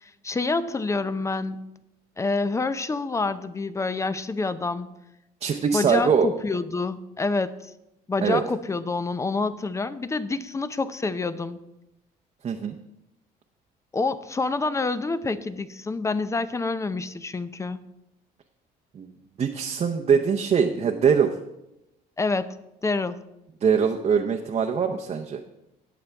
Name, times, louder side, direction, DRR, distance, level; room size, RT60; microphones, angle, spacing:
voice 1, 0.0-1.7 2.2-4.9 5.7-7.7 8.1-11.6 13.9-17.8 22.2-22.6 22.8-23.2, left 3 dB, 15° left, 14 dB, 0.6 m, -27 dB
voice 2, 5.4-6.3 8.2-8.4 12.4-12.7 18.9-19.1 19.4-21.3 23.6-25.4, right 6 dB, 40° right, 3 dB, 0.7 m, -22 dB
18.5 x 6.9 x 3.5 m, 0.89 s
cardioid pair, 110°, 17 cm